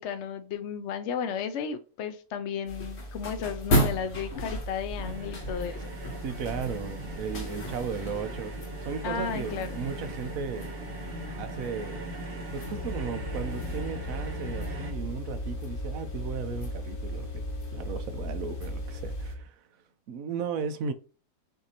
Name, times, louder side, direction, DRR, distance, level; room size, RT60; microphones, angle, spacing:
voice 1, 0.0-5.8 9.0-9.8, left 7 dB, 65° left, 0.7 m, -34 dB
sound 1, 2.7-19.3, equal, 45° left, 1.2 m, -36 dB
sound 2, 5.0-14.9, right 1 dB, 40° right, 1.1 m, -40 dB
voice 2, 6.2-8.5 8.8-10.7 11.3-12.0 12.5-17.4 17.7-19.5 20.1-20.9, right 6 dB, 70° right, 1.0 m, -35 dB
sound 3, 12.6-19.5, left 1 dB, 85° left, 1.4 m, -37 dB
6.3 x 2.7 x 2.8 m
omnidirectional pair, 1.7 m